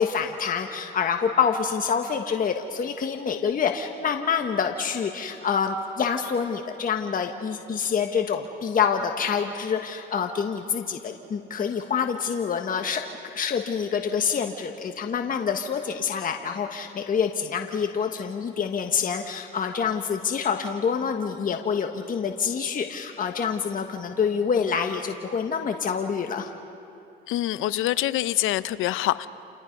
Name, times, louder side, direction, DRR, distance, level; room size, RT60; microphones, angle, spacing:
voice 1, 0.0-13.0 13.3-26.5, left 6 dB, 40° left, 4 dB, 1.5 m, -26 dB
voice 2, 27.3-29.3, left 14 dB, 75° left, 15 dB, 0.8 m, -25 dB
29.5 x 28.5 x 5.4 m, 2.8 s
cardioid pair, 90°, 21 cm